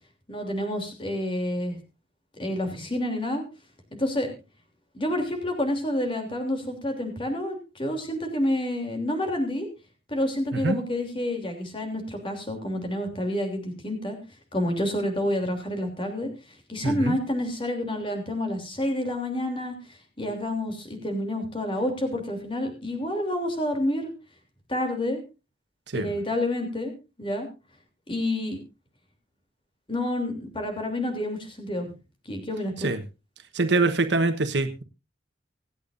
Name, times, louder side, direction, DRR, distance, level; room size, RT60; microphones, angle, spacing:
voice 1, 0.3-1.8 2.4-3.4 3.9-4.3 4.9-9.7 10.1-14.2 14.5-16.3 16.7-24.1 24.7-25.2 25.9-26.9 27.2-27.5 28.1-28.6 29.9-31.9 32.2-32.9, left 1 dB, 30° left, 4 dB, 3.1 m, -29 dB
voice 2, 16.8-17.1 25.9-26.1 32.8-33.0 33.5-34.8, right 3 dB, 75° right, 8 dB, 1.2 m, -24 dB
25.5 x 8.5 x 2.6 m, 0.29 s
head